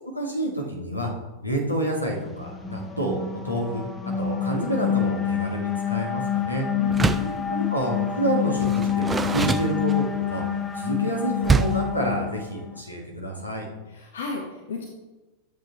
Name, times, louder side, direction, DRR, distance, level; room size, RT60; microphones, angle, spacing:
voice 1, 0.1-1.1 1.4-3.2 3.4-3.9 4.2-6.7 7.5-10.4 10.8-13.7, right 1 dB, 85° left, 0 dB, 1.8 m, -28 dB
sound 1, 2.3-12.8, left 9 dB, 20° left, 0.8 m, -27 dB
voice 2, 6.8-7.7 13.9-14.9, left 4 dB, 65° left, 2 dB, 1.0 m, -34 dB
Door, 6.9-7.4 8.6-10.3 11.4-11.9, right 4 dB, 15° right, 0.4 m, -25 dB
11.5 x 7.7 x 3.0 m, 1.1 s
figure-of-eight pair, 90°, 0 cm